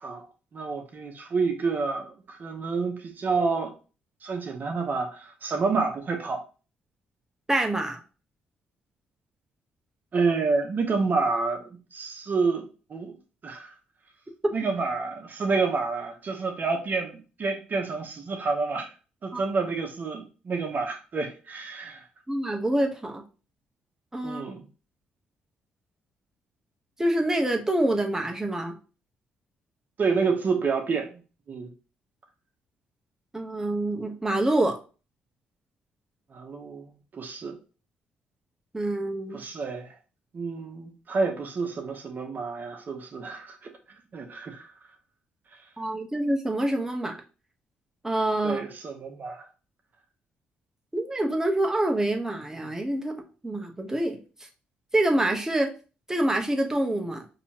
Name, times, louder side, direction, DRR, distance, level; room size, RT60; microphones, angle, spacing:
voice 1, 0.5-3.7 4.2-6.4 10.1-13.2 13.4-13.7 14.5-18.9 19.2-22.0 24.2-24.6 30.0-31.2 31.5-31.7 36.3-36.9 37.1-37.6 39.3-39.9 40.3-43.7 44.1-44.7 48.4-49.4, right 4 dB, 50° right, 0.9 m, -29 dB
voice 2, 7.5-8.0 19.3-19.4 22.3-23.2 24.1-24.4 27.0-28.7 33.3-34.8 38.7-39.4 45.8-47.2 48.0-48.6 50.9-54.2 54.9-55.7 56.1-57.2, right 1 dB, 10° right, 0.9 m, -26 dB
4.1 x 2.8 x 2.9 m
supercardioid pair, 55°, 4 cm